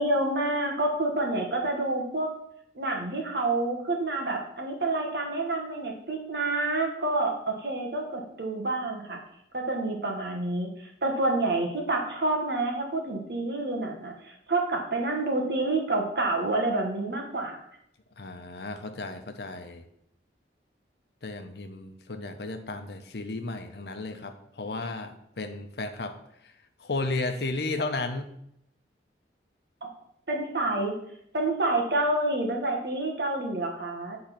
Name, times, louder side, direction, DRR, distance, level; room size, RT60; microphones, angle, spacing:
voice 1, 0.0-2.3 2.7-9.2 9.5-17.6 29.8-29.9 30.3-30.9 31.3-34.2, right 2 dB, 65° right, 2 dB, 1.5 m, -28 dB
voice 2, 18.2-19.8 21.2-26.1 26.4-26.5 26.8-28.3, left 2 dB, 65° left, 6 dB, 0.8 m, -34 dB
8.6 x 3.8 x 5.8 m, 0.73 s
head